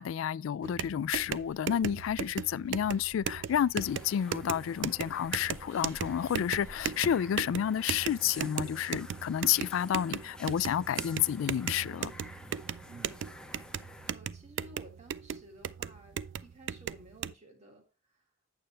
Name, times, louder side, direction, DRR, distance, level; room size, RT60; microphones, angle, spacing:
voice 1, 0.0-12.1, left 9 dB, 75° left, 0.3 m, -30 dB
sound 1, 0.6-17.3, right 8 dB, 65° right, 0.3 m, -38 dB
Animal, 1.1-6.9, equal, 80° right, 4.8 m, -57 dB
sound 2, 3.8-14.1, left 1 dB, 5° left, 0.7 m, -50 dB
voice 2, 12.8-13.2 13.6-17.8 18.1-18.2, right 1 dB, 35° right, 2.0 m, -55 dB
8.7 x 6.7 x 3.3 m
head